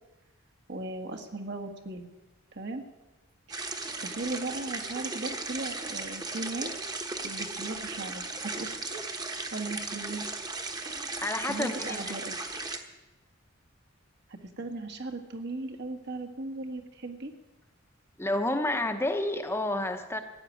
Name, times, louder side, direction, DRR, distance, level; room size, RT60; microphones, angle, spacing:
voice 1, 0.7-2.1 2.5-2.8 3.5-6.7 7.2-9.0 9.5-10.3 11.5-12.3 14.6-17.3, right 2 dB, 55° right, 4 dB, 1.7 m, -37 dB
sound 1, 3.5-12.8, right 3 dB, 20° right, 1.2 m, -36 dB
voice 2, 11.2-12.0 18.2-20.2, left 1 dB, 10° left, 6 dB, 0.9 m, -29 dB
15.0 x 7.5 x 9.8 m, 1.1 s
head